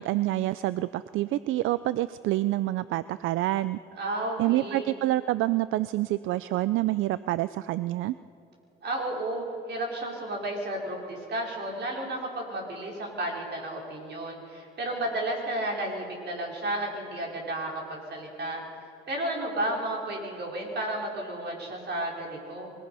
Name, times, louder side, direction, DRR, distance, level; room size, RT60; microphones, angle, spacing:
voice 1, 0.0-3.8 4.4-8.2, right 16 dB, 85° right, 16 dB, 0.4 m, -27 dB
voice 2, 3.9-4.9 8.8-18.6 19.1-22.7, right 1 dB, 60° right, -1 dB, 4.8 m, -32 dB
25.5 x 18.5 x 5.6 m, 2.8 s
cardioid pair, 90°, 20 cm